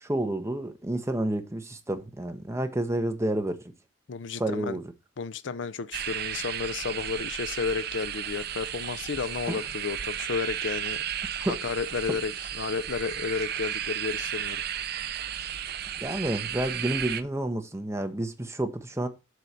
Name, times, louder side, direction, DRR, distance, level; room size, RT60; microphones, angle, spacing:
voice 1, 0.0-3.6 4.4-4.8 9.5-9.6 11.4-11.6 16.0-19.1, right 1 dB, 15° right, 1.1 m, -30 dB
voice 2, 4.1-4.8 5.2-11.0 11.6-14.6, left 5 dB, 65° left, 0.5 m, -32 dB
sound 1, 5.9-17.2, right 10 dB, 55° right, 0.7 m, -34 dB
7.8 x 4.5 x 6.8 m
head